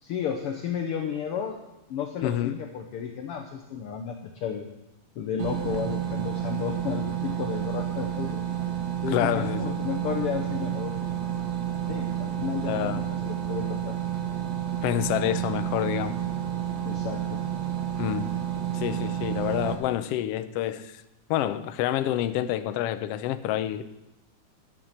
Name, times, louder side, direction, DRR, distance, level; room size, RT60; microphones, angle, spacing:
voice 1, 0.0-1.6 1.9-4.7 5.1-8.4 9.0-11.1 11.9-13.9 16.8-17.4, left 7 dB, 70° left, 4 dB, 1.4 m, -32 dB
voice 2, 2.2-2.6 9.1-9.8 12.6-13.0 14.8-16.2 18.0-18.3 18.7-20.9 21.3-24.0, left 12 dB, 90° left, 11 dB, 1.3 m, -28 dB
sound 1, 5.4-19.8, right 10 dB, 65° right, 2.2 m, -30 dB
11.0 x 7.3 x 7.3 m, 0.94 s
omnidirectional pair, 3.4 m